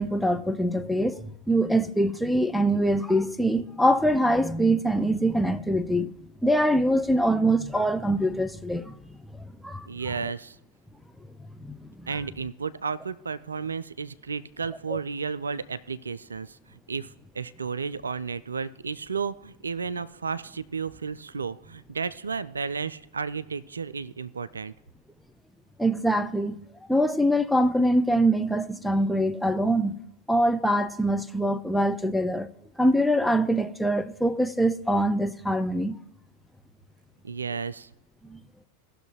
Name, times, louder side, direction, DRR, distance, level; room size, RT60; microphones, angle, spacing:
voice 1, 0.0-6.1 6.4-9.0 9.4-9.9 11.6-12.1 25.8-26.6 26.9-29.9 30.3-32.5 32.8-36.0 38.3-38.4, right 1 dB, ahead, 0.4 m, -24 dB
voice 2, 9.9-10.6 12.1-24.7 37.2-37.9, right 5 dB, 75° right, 0.3 m, -33 dB
17.0 x 6.4 x 3.0 m
figure-of-eight pair, 90°, 0 cm